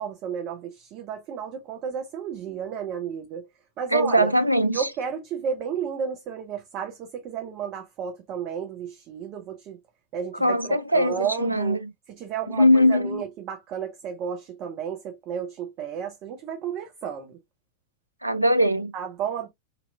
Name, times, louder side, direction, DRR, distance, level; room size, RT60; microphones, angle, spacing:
voice 1, 0.0-3.5 3.8-4.3 4.7-9.8 10.1-11.8 12.1-17.4 18.9-19.5, right 7 dB, 35° right, 0.7 m, -32 dB
voice 2, 3.9-4.8 10.4-11.9 12.5-13.2 18.2-18.9, equal, 85° right, 0.4 m, -21 dB
4.0 x 2.9 x 2.3 m
figure-of-eight pair, 90°, 0 cm